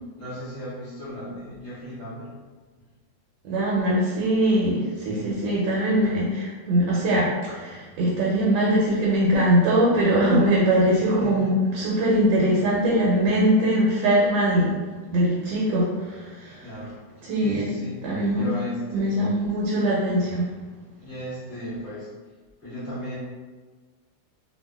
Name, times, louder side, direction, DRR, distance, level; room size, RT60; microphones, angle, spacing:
voice 1, 0.2-2.3 5.0-5.3 10.9-11.5 16.6-16.9 17.4-18.0 18.3-19.2 21.0-22.1 22.6-23.2, equal, 10° right, -14 dB, 0.9 m, -36 dB
voice 2, 3.4-14.8 15.1-16.6 17.2-17.7 18.0-18.5 18.9-20.4, right 1 dB, 80° right, -6 dB, 1.3 m, -22 dB
3.0 x 2.5 x 2.2 m, 1.4 s
omnidirectional pair, 2.1 m